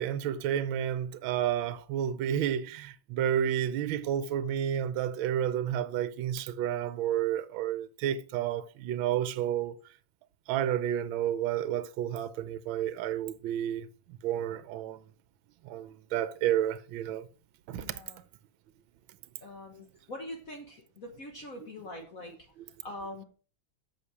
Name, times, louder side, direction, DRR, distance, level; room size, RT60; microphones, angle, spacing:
voice 1, 0.0-9.8 10.5-13.9 14.2-15.0 15.6-17.3 17.7-18.0, right 10 dB, 75° right, 1.4 m, -31 dB
voice 2, 17.7-18.2 19.4-22.4 22.8-23.2, left 1 dB, 45° left, 1.4 m, -43 dB
8.4 x 6.5 x 4.8 m
omnidirectional pair, 2.2 m